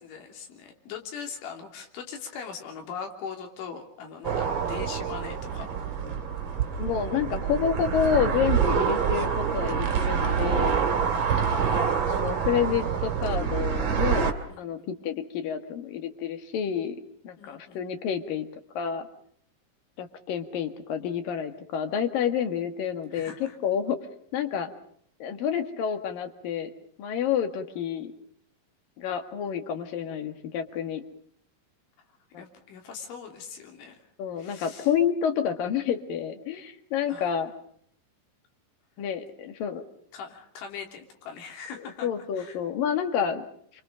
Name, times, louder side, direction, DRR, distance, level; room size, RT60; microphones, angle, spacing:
voice 1, 0.0-5.7 11.3-12.2 14.5-14.9 17.4-17.9 23.1-23.6 32.4-34.1 34.4-34.9 37.1-37.4 40.1-42.1 42.3-42.6, left 6 dB, 80° left, 3 dB, 5.6 m, -41 dB
sound 1, 4.2-14.3, right 7 dB, 40° right, 2.9 m, -26 dB
voice 2, 6.8-10.9 11.5-17.0 17.2-18.4 18.7-19.1 20.0-23.3 23.6-24.0 24.3-24.7 25.2-26.7 27.0-28.1 29.0-31.0 32.3-32.4 34.2-37.5 39.0-39.8 42.0-43.4, left 8 dB, 55° left, 8 dB, 3.2 m, -29 dB
28.5 x 25.5 x 5.1 m, 0.62 s
omnidirectional pair, 5.4 m